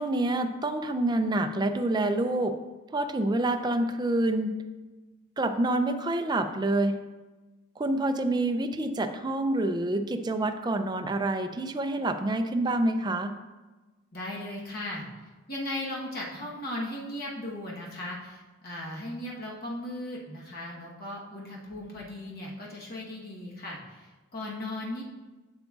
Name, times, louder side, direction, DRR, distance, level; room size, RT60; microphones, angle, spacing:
voice 1, 0.0-2.6 2.9-4.6 5.4-7.0 7.8-13.4, right 2 dB, 20° right, 8 dB, 0.4 m, -27 dB
voice 2, 14.1-15.0 15.5-25.0, left 1 dB, 45° left, -4 dB, 1.1 m, -37 dB
8.0 x 7.6 x 2.4 m, 1.2 s
head